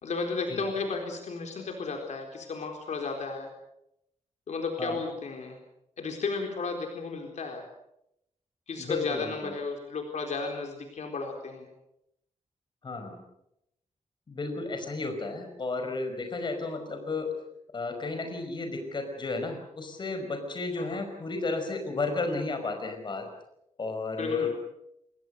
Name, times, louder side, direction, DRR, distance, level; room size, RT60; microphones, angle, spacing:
voice 1, 0.0-3.5 4.5-5.6 6.0-7.6 8.7-11.7 20.8-21.0 24.2-24.5, left 4 dB, 70° left, 3 dB, 4.1 m, -34 dB
voice 2, 8.8-9.5 12.8-13.2 14.3-17.3 17.7-23.3 23.8-24.5, left 3 dB, 40° left, 5 dB, 5.4 m, -33 dB
28.5 x 21.5 x 6.7 m, 0.79 s
wide cardioid pair, 170°, 12 cm